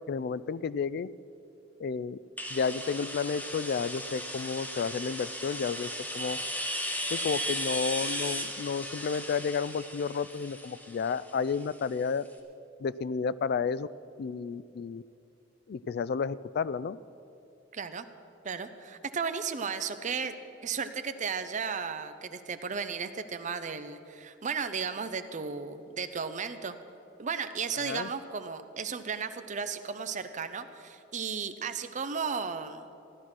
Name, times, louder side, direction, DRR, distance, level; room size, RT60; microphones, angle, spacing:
voice 1, 0.1-1.1 1.8-2.2 2.5-6.4 7.1-12.3 12.8-13.9 14.2-15.0 15.7-17.0 27.8-28.1, left 5 dB, 55° left, 18 dB, 0.3 m, -31 dB
sound 1, 2.4-12.0, equal, 10° left, 1.3 m, -36 dB
voice 2, 17.7-18.1 18.4-20.3 20.6-26.8 27.2-32.9, right 5 dB, 40° right, 10 dB, 0.7 m, -34 dB
15.5 x 11.5 x 6.1 m, 2.7 s
head